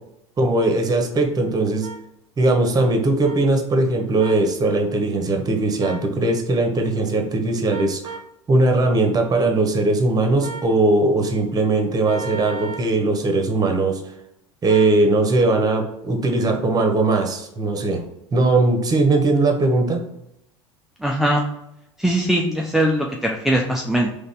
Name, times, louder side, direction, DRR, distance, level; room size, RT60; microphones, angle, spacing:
voice 1, 0.4-1.9 2.4-8.1 8.5-14.0 14.6-18.0 18.3-20.0, right 2 dB, 25° right, 4 dB, 1.1 m, -19 dB
sound 1, 1.8-2.0 3.2-3.4 4.2-4.4 5.8-6.1 7.7-8.3 10.4-10.7 12.0-12.9 14.7-15.0, right 5 dB, 50° right, 0.7 m, -34 dB
voice 2, 21.0-21.5 22.0-24.1, right 1 dB, ahead, 0 dB, 0.5 m, -20 dB
4.0 x 3.4 x 3.5 m, 0.82 s
hypercardioid pair, 75°, 16 cm